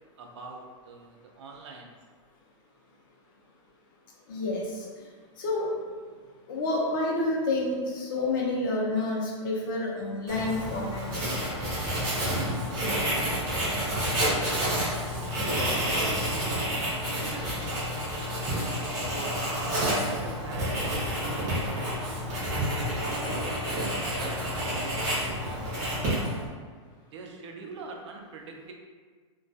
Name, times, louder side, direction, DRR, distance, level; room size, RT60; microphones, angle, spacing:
voice 1, 0.2-1.9 13.5-16.7 17.1-17.9 19.1-20.8 21.5-25.8 27.1-28.7, right 4 dB, 65° right, 2 dB, 0.4 m, -44 dB
voice 2, 4.3-4.9 5.4-5.7 6.5-11.3, left 2 dB, 45° left, -3 dB, 0.5 m, -29 dB
Writing, 10.3-26.5, equal, 20° right, 0.6 m, -29 dB
2.2 x 2.2 x 2.6 m, 1.6 s
supercardioid pair, 175°, 16 cm